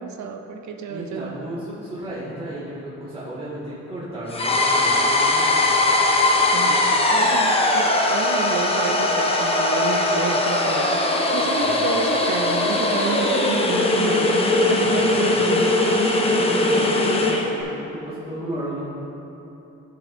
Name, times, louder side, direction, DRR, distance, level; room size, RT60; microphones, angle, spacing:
voice 1, 0.0-1.4 6.5-14.4 14.7-15.7, right 6 dB, 70° right, 5 dB, 0.6 m, -30 dB
voice 2, 0.9-5.6 11.5-11.8 14.6-15.0 15.3-15.4 16.4-18.9, right 1 dB, 20° right, -10 dB, 1.7 m, -34 dB
sound 1, 4.3-17.5, left 2 dB, 20° left, 0.8 m, -20 dB
10.5 x 6.8 x 2.6 m, 3.0 s
cardioid pair, 90°, 30 cm